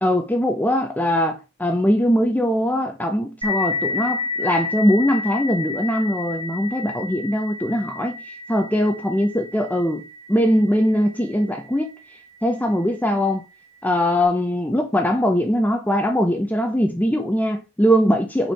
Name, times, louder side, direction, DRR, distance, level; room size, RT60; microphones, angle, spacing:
voice 1, 0.0-8.2 8.5-10.0 10.3-11.9 12.4-13.4 13.8-18.5, equal, 5° left, 0.7 m, -21 dB
sound 1, 3.4-12.7, left 4 dB, 20° right, 2.1 m, -31 dB
6.0 x 5.3 x 4.2 m
head